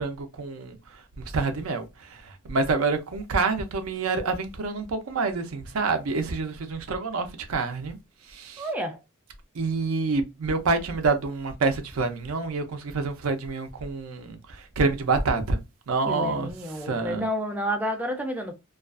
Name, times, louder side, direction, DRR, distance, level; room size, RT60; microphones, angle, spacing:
voice 1, 0.0-8.0 8.3-8.7 9.5-15.6 15.9-17.3, right 3 dB, 80° right, 0.5 m, -27 dB
voice 2, 8.6-9.0 16.1-18.5, equal, 5° right, 0.4 m, -30 dB
2.4 x 2.3 x 2.3 m
head